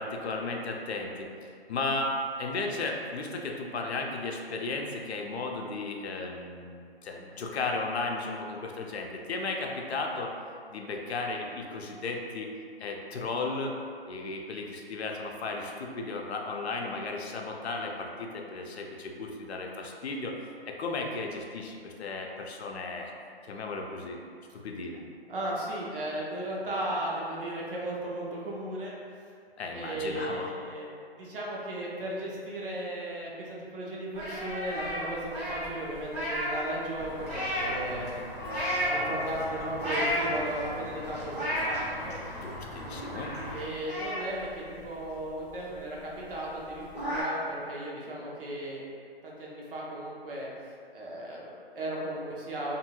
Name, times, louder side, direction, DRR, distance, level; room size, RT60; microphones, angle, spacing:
voice 1, 0.0-10.3 10.7-12.5 12.8-13.7 14.1-20.3 20.6-23.1 23.5-24.2 24.6-25.0 29.6-30.5 42.4-43.3, left 3 dB, 85° left, 1 dB, 0.5 m, -35 dB
voice 2, 25.3-29.0 29.7-30.9 31.1-38.1 38.7-42.1 43.4-48.9 49.2-50.5 50.9-52.8, right 1 dB, 60° right, -4 dB, 0.8 m, -36 dB
sound 1, 34.1-36.7 37.0-37.9 38.4-39.0 39.6-40.6 41.0-41.8 42.3-42.4 42.6-43.5 43.9-45.4 45.7-45.8 46.2-46.3 46.6-47.2, equal, 15° right, 0.6 m, -32 dB
Walk footsteps / Bell, 37.0-43.6, left 2 dB, 15° left, 0.3 m, -40 dB
2.6 x 2.5 x 2.8 m, 2.3 s
hypercardioid pair, 150°, 31 cm